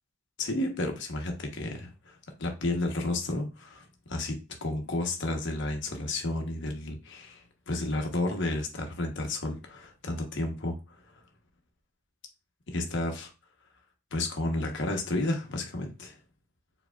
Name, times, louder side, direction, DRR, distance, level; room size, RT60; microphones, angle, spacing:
voice 1, 0.4-4.4 4.6-10.8 12.7-13.3 14.1-16.2, left 2 dB, 55° left, 3 dB, 1.0 m, -32 dB
4.8 x 3.9 x 2.3 m, 0.30 s
head